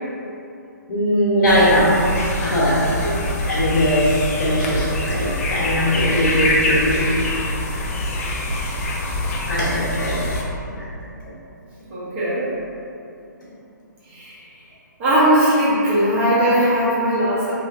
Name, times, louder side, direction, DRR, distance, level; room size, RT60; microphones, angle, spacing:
voice 1, 0.9-2.8 3.5-7.1 9.4-10.2 11.2-11.3, equal, 80° left, -9 dB, 1.1 m, -20 dB
sound 1, 1.4-10.4, left 1 dB, 45° left, 0.5 m, -24 dB
voice 2, 11.9-12.5 14.1-14.3 15.0-17.5, equal, 35° right, -9 dB, 1.2 m, -19 dB
3.1 x 3.1 x 2.6 m, 2.7 s
hypercardioid pair, 150°, 11 cm